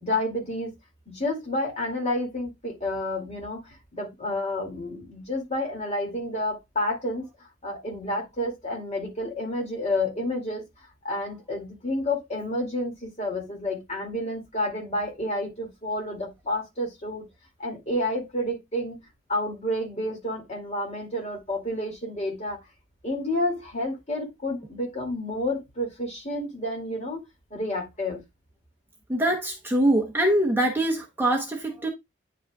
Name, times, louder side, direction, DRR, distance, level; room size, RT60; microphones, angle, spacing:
voice 1, 0.0-0.7 1.1-7.3 7.6-17.2 17.6-19.0 19.3-22.6 23.0-27.2 27.5-28.2, left 1 dB, 35° left, 2.5 m, -30 dB
voice 2, 29.1-31.9, right 1 dB, 10° right, 0.9 m, -23 dB
9.4 x 5.0 x 2.3 m
head